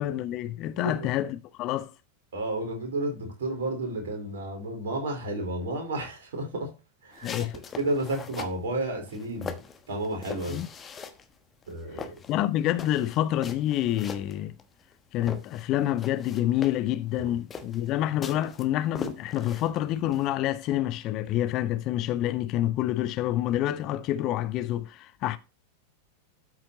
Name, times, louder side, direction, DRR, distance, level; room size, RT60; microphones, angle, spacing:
voice 1, 0.0-1.9 7.2-7.6 10.5-10.7 12.0-14.6 15.1-25.4, left 13 dB, 40° left, 0.8 m, -28 dB
voice 2, 0.8-1.1 2.3-6.7 7.0-7.3 7.8-9.5 9.9-10.6 11.7-12.2 17.2-17.3, right 2 dB, 60° right, 4.1 m, -31 dB
sound 1, 7.1-8.6 9.1-11.3 11.6-14.9 15.2-20.3, left 5 dB, 20° left, 1.2 m, -41 dB
12.5 x 6.0 x 2.9 m
figure-of-eight pair, 90°, 0 cm